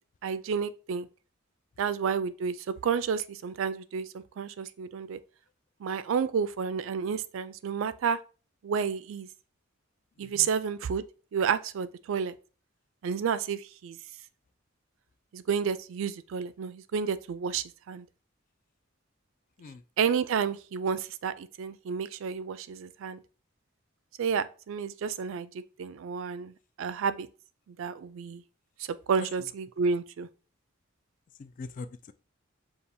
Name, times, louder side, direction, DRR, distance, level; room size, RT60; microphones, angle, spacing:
voice 1, 0.2-1.1 1.8-5.2 5.8-8.2 8.6-9.3 10.2-11.0 11.3-12.3 13.0-14.0 15.3-18.1 20.0-23.2 24.2-26.5 26.8-27.3 27.7-28.4 29.1-30.3, right 6 dB, 70° right, 0.3 m, -30 dB
voice 2, 10.2-10.5 19.6-19.8 29.2-29.3 31.4-32.1, left 4 dB, 40° left, 0.3 m, -42 dB
6.9 x 2.4 x 2.6 m
head